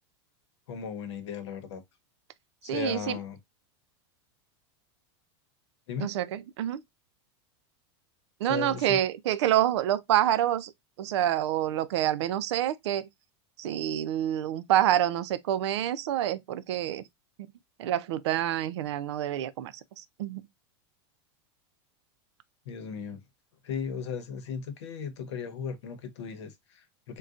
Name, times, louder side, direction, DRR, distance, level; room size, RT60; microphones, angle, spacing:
voice 1, 0.7-1.8 2.6-3.4 5.9-6.1 8.5-9.0 22.7-23.2 23.6-27.2, left 6 dB, 90° left, 0.9 m, -36 dB
voice 2, 2.6-3.2 6.0-6.8 8.4-10.7 11.0-13.1 13.6-17.0 17.8-20.5, right 11 dB, 80° right, 0.4 m, -27 dB
3.8 x 2.2 x 2.4 m
supercardioid pair, 175°, 14 cm